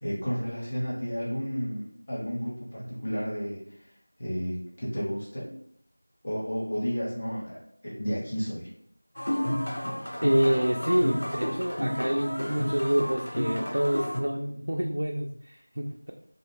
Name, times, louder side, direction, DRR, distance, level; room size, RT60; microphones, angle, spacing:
voice 1, 0.0-3.9 4.2-5.5 6.2-8.7, equal, 25° left, -6 dB, 0.8 m, -32 dB
Gamalat Shiha Show, 9.2-14.2, equal, 60° left, 0.5 m, -31 dB
voice 2, 10.2-16.1, equal, 65° right, 1 dB, 0.3 m, -27 dB
2.4 x 2.3 x 3.5 m, 0.68 s
figure-of-eight pair, 175°, 0 cm